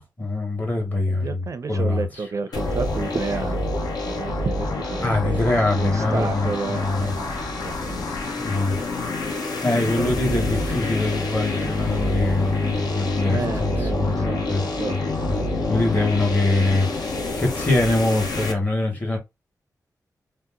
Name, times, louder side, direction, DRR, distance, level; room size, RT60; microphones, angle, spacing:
voice 1, 0.0-2.2 5.0-7.1 8.4-8.8 9.6-15.3 15.7-17.0 17.4-19.2, left 2 dB, 25° left, 1.2 m, -23 dB
voice 2, 1.2-5.5 5.7-8.1 10.0-10.1 13.3-15.7, right 4 dB, 50° right, 0.4 m, -31 dB
sound 1, 2.5-18.5, left 2 dB, 75° left, 0.8 m, -27 dB
2.8 x 2.0 x 3.4 m
wide cardioid pair, 110°, 7 cm